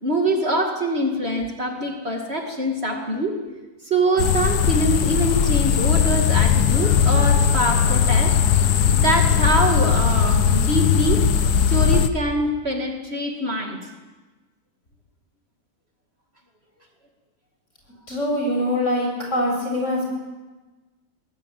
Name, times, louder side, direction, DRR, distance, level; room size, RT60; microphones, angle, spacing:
voice 1, 0.0-3.4 3.8-8.4 8.9-11.3 11.7-13.8, right 1 dB, 40° right, 2 dB, 2.6 m, -24 dB
sound 1, 4.2-12.1, left 7 dB, 80° left, 1.6 m, -18 dB
voice 2, 18.1-20.0, left 1 dB, 50° left, -1 dB, 8.3 m, -23 dB
21.5 x 19.0 x 9.1 m, 1.2 s
omnidirectional pair, 1.7 m